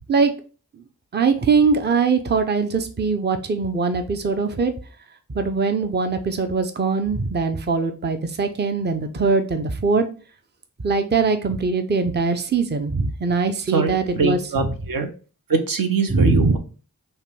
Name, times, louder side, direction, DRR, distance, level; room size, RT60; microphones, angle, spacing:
voice 1, 1.1-4.7 5.3-10.0 10.8-14.4 16.1-16.6, right 4 dB, 30° right, 7 dB, 0.6 m, -21 dB
voice 2, 13.7-15.1 15.5-16.6, right 4 dB, 70° right, 6 dB, 0.8 m, -23 dB
5.6 x 2.2 x 3.2 m, 0.36 s
cardioid pair, 45°, 36 cm